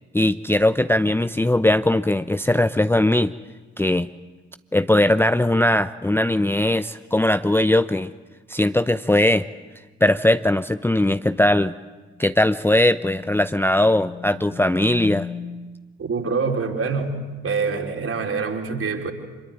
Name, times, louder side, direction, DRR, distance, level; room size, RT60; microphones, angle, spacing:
voice 1, 0.1-3.3 3.8-4.1 4.7-8.1 8.5-9.5 10.0-11.7 12.2-15.3, left 1 dB, 5° left, 11 dB, 0.8 m, -19 dB
sound 1, 12.0-15.8, left 6 dB, 40° left, 3.6 m, -38 dB
voice 2, 16.0-19.1, right 4 dB, 45° right, 2 dB, 4.5 m, -25 dB
26.5 x 22.5 x 9.1 m, 1.3 s
figure-of-eight pair, 40°, 32 cm